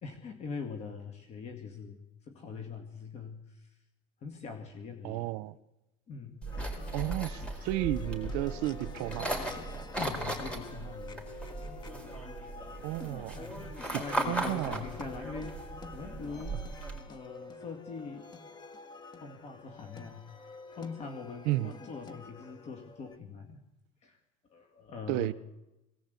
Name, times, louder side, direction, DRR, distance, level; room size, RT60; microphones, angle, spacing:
voice 1, 0.0-3.8 4.2-5.3 6.1-6.4 6.9-7.0 9.9-11.2 13.3-13.7 14.0-16.6 17.1-18.3 19.2-20.3 20.7-23.6 24.0-24.2 24.5-25.3, left 5 dB, 45° left, 2.3 m, -43 dB
voice 2, 5.0-5.5 6.9-9.3 12.8-13.4 13.9-14.0 14.3-14.8 21.5-21.7 25.1-25.3, right 17 dB, 75° right, 0.8 m, -32 dB
sound 1, 6.4-17.0, right 2 dB, 5° left, 4.4 m, -38 dB
sound 2, 6.5-23.2, left 2 dB, 30° left, 1.7 m, -46 dB
21.5 x 18.5 x 8.3 m
cardioid pair, 125°, 15 cm